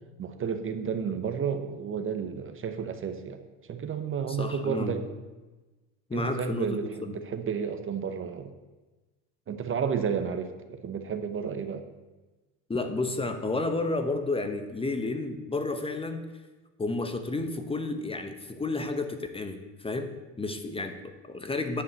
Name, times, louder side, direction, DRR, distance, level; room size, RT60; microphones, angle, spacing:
voice 1, 0.2-3.4 3.7-5.1 6.1-8.5 9.5-11.8, right 7 dB, 35° right, 8 dB, 0.9 m, -32 dB
voice 2, 4.3-5.0 6.1-7.1 12.7-16.3 16.8-20.1 20.4-21.8, left 2 dB, 15° left, 7 dB, 1.0 m, -31 dB
9.9 x 5.6 x 7.9 m, 1.2 s
supercardioid pair, 105°, 38 cm